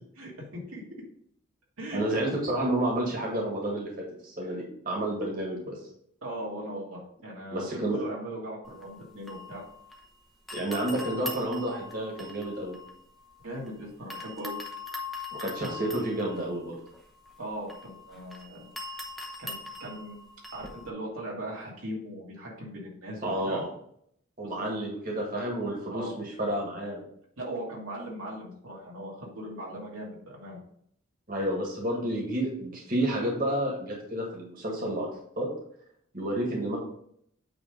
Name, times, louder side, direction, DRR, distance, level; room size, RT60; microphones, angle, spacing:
voice 1, 0.2-0.8 1.8-2.2 4.4-4.5 6.2-9.6 13.4-14.6 17.4-19.0 19.4-20.2 20.5-23.6 24.4-24.7 25.9-26.1 27.4-30.6, right 1 dB, 85° right, -3 dB, 2.4 m, -39 dB
voice 2, 1.9-3.9 4.2-5.7 7.5-8.0 10.5-12.8 15.4-16.7 23.2-23.7 24.4-27.0 31.3-35.1 35.4-35.5 36.1-36.8, right 1 dB, 40° right, -2 dB, 1.8 m, -30 dB
sound 1, 8.6-10.1 10.5-13.7 14.1-20.9, left 2 dB, ahead, 0.9 m, -42 dB
8.6 x 3.4 x 5.1 m, 0.68 s
head